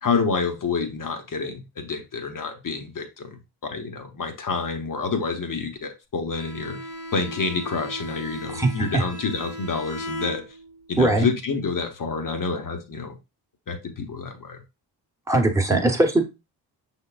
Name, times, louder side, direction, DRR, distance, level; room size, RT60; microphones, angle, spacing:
voice 1, 0.0-6.9 7.1-10.6 10.9-13.2 13.7-14.6, left 4 dB, 40° left, 1.0 m, -28 dB
Bowed string instrument, 6.3-10.9, equal, 80° left, 2.3 m, -37 dB
voice 2, 8.5-9.0 11.0-11.3 15.3-16.2, right 2 dB, 5° right, 1.1 m, -20 dB
5.6 x 3.7 x 2.4 m
cardioid pair, 60°, 48 cm